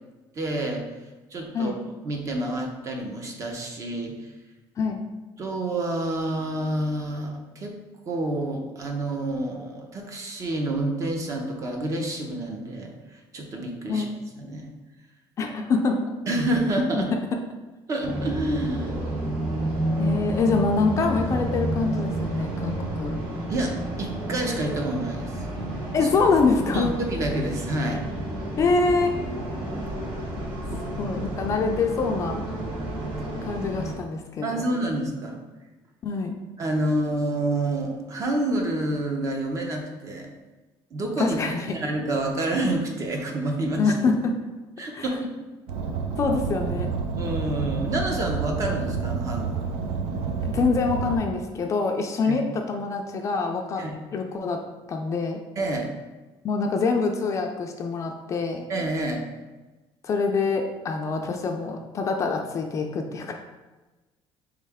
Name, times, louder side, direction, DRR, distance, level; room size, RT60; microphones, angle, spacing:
voice 1, 0.4-0.8 1.3-1.7 2.0-4.1 5.4-7.8 8.1-12.9 13.3-14.0 14.4-14.7 16.3-17.1 17.9-19.0 23.5-23.7 24.0-25.4 26.0-26.1 26.7-28.0 30.7-30.8 34.4-35.4 36.6-40.3 40.9-43.8 44.8-45.5 47.2-49.6 52.3-52.4 53.8-54.0 55.6-55.9 58.7-59.2, right 1 dB, 35° right, 2 dB, 0.7 m, -28 dB
voice 2, 15.4-16.1 16.9-17.0 20.0-23.2 25.9-26.9 28.6-29.1 31.0-32.4 33.4-34.7 36.0-36.3 41.2-41.8 43.8-44.3 44.9-45.1 46.2-46.9 50.4-53.8 54.1-54.6 54.9-55.4 56.4-58.7 60.0-63.3, left 4 dB, 30° left, 3 dB, 0.4 m, -25 dB
sound 1, 18.0-33.9, right 1 dB, 55° right, 1.4 m, -30 dB
Car, 45.7-51.2, right 5 dB, 75° right, 0.6 m, -29 dB
4.6 x 3.2 x 3.5 m, 1.2 s
cardioid pair, 160°, 10 cm